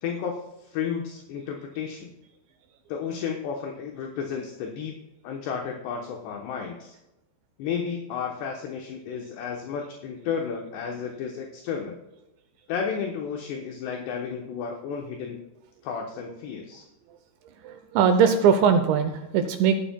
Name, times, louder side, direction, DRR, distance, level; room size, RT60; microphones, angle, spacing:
voice 1, 0.0-2.1 2.9-5.0 5.2-7.0 7.6-12.0 12.7-15.4 15.8-16.8, left 6 dB, 75° left, 1 dB, 2.8 m, -32 dB
voice 2, 17.6-19.8, right 6 dB, 80° right, 7 dB, 2.7 m, -20 dB
16.0 x 12.5 x 2.3 m, 0.94 s
omnidirectional pair, 5.8 m